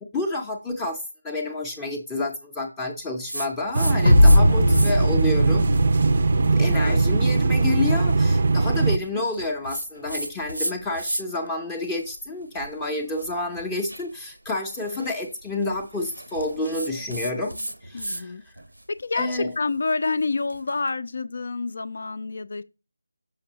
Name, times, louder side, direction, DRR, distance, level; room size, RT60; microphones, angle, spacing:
voice 1, 0.1-5.7 6.5-18.3 19.2-19.5, left 2 dB, 10° left, 0.6 m, -29 dB
sound 1, 3.3-4.4 4.7-5.2 5.7-11.5 11.8-18.3 18.6-20.8, right 1 dB, 90° right, 0.7 m, -35 dB
sound 2, 3.7-8.9, right 3 dB, 45° right, 0.5 m, -20 dB
sound 3, 4.1-7.3, left 1 dB, 75° left, 0.9 m, -19 dB
voice 2, 4.5-5.4 6.6-7.0 8.8-9.2 17.9-18.4 18.9-22.6, left 3 dB, 50° left, 0.5 m, -29 dB
6.5 x 5.3 x 2.8 m
figure-of-eight pair, 160°, 0 cm